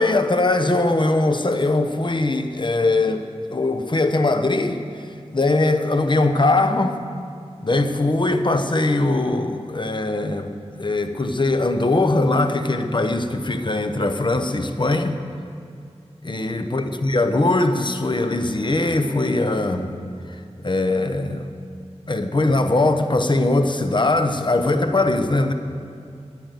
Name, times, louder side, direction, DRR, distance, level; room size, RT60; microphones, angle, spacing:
voice 1, 0.0-7.0 7.6-10.5 10.8-15.2 16.2-19.9 20.3-21.5 22.1-25.5, left 2 dB, 45° left, 7 dB, 1.1 m, -21 dB
16.5 x 9.9 x 7.0 m, 2.3 s
wide cardioid pair, 65°, 11 cm